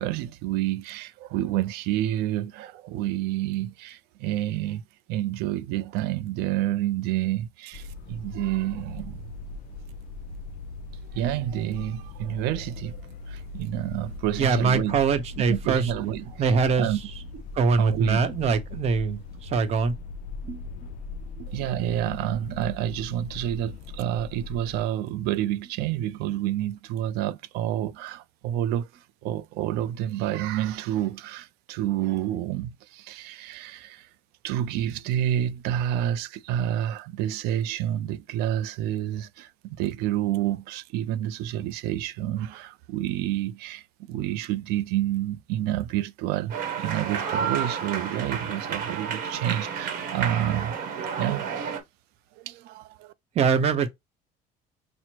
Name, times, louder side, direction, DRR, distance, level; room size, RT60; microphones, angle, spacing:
voice 1, 0.0-4.8 5.1-9.3 11.1-13.0 13.3-14.9 15.5-16.4 16.8-17.0 17.8-18.2 21.5-28.9 29.2-34.1 34.4-43.8 44.1-50.7 51.2-51.8 52.4-53.1, right 12 dB, 80° right, 0.4 m, -29 dB
sound 1, 7.7-24.8, left 3 dB, 55° left, 0.4 m, -40 dB
voice 2, 14.4-15.9 16.4-17.1 17.5-19.9 20.4-20.6 21.4-21.5 53.3-53.9, right 5 dB, 40° right, 0.7 m, -23 dB
sound 2, 46.5-51.8, right 6 dB, 60° right, 1.0 m, -31 dB
5.9 x 2.0 x 2.9 m
cardioid pair, 165°, 16 cm